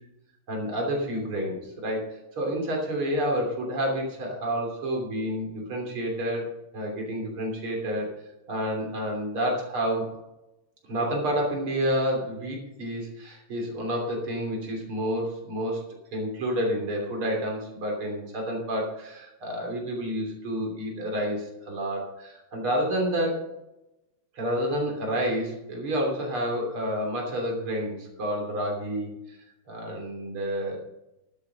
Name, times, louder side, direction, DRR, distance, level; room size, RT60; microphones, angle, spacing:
voice 1, 0.5-6.5 6.7-8.1 8.5-10.1 10.8-15.8 16.1-23.4 24.3-29.4 29.7-30.8, equal, 90° right, 0 dB, 4.1 m, -29 dB
12.0 x 11.0 x 5.2 m, 0.94 s
omnidirectional pair, 2.3 m